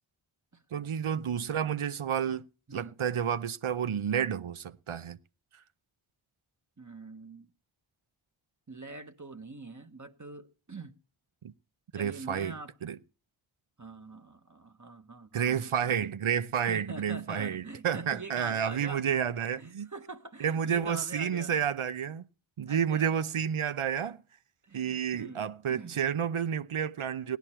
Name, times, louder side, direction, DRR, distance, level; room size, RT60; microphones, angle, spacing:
voice 1, 0.7-2.4 2.7-5.2 11.4-11.5 11.9-12.6 12.8-13.0 15.3-19.9 20.4-22.2 22.6-24.2 24.7-27.4, right 8 dB, 80° right, 0.7 m, -30 dB
voice 2, 6.8-7.5 8.7-11.0 11.9-12.7 13.8-16.1 16.7-19.1 19.4-21.5 22.7-23.1 24.6-26.0, right 3 dB, 35° right, 1.2 m, -44 dB
17.5 x 10.5 x 4.3 m
wide cardioid pair, 55°, 49 cm